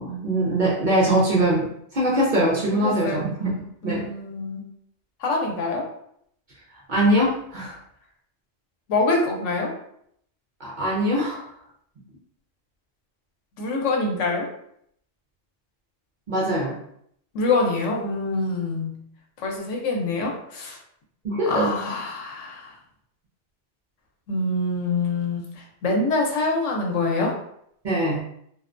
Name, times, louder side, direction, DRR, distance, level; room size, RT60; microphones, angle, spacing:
voice 1, 0.0-1.7 1.9-3.5 3.8-4.0 6.9-7.8 10.6-11.4 16.3-16.7 21.2-21.7 27.8-28.2, right 1 dB, 55° right, -5 dB, 0.6 m, -22 dB
voice 2, 2.8-3.2 3.8-4.6 5.2-5.9 8.9-9.7 13.6-14.5 17.3-18.9 19.4-20.8 21.5-22.8 24.3-27.3, left 3 dB, 85° left, 1 dB, 1.0 m, -25 dB
2.4 x 2.1 x 2.4 m, 0.69 s
omnidirectional pair, 1.2 m